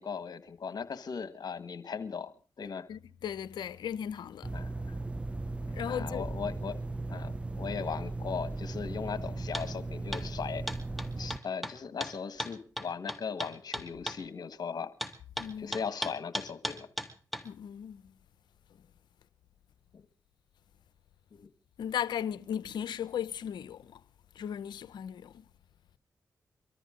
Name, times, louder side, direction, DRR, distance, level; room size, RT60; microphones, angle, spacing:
voice 1, 0.0-2.9 4.5-4.7 5.9-6.8 7.1-10.6 11.2-14.9 15.6-16.9 19.9-20.0 21.3-21.5, left 6 dB, 65° left, 1.5 m, -38 dB
voice 2, 2.9-4.5 5.7-6.3 15.4-15.8 17.4-18.0 21.8-24.0 24.4-25.4, left 9 dB, 80° left, 0.7 m, -36 dB
sound 1, 4.4-11.4, right 2 dB, 15° right, 0.7 m, -37 dB
sound 2, 9.5-9.7 10.1-10.3 10.7-14.2 15.0-17.5, equal, ahead, 2.4 m, -36 dB
24.0 x 13.5 x 3.7 m
supercardioid pair, 40°, 7 cm